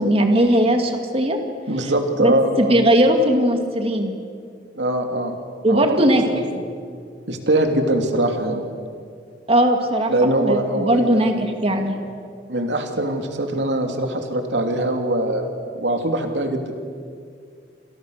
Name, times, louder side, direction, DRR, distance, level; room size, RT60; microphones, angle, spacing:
voice 1, 0.0-1.4 1.8-1.9 2.2-4.1 5.6-6.2 9.5-12.0, equal, 35° right, 4 dB, 2.3 m, -19 dB
voice 2, 1.7-2.8 4.8-5.3 5.7-6.0 6.3-6.6 7.3-8.6 10.1-11.5 12.5-15.5 15.8-16.7, right 1 dB, 90° right, 4 dB, 3.0 m, -22 dB
29.5 x 27.0 x 6.7 m, 2.3 s
head